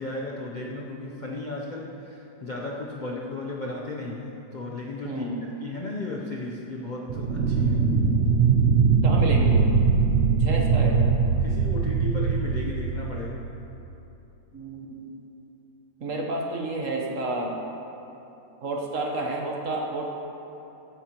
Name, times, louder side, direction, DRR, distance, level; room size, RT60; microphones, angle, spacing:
voice 1, 0.0-7.9 11.4-13.5, left 2 dB, 50° left, -2 dB, 0.5 m, -35 dB
voice 2, 5.0-5.4 9.0-9.7 10.3-11.1 14.5-15.2 16.0-17.6 18.6-20.1, right 2 dB, 50° right, 0 dB, 1.2 m, -30 dB
sound 1, 7.1-13.5, right 5 dB, 65° right, 0.6 m, -21 dB
14.5 x 9.7 x 3.0 m, 3.0 s
omnidirectional pair, 1.9 m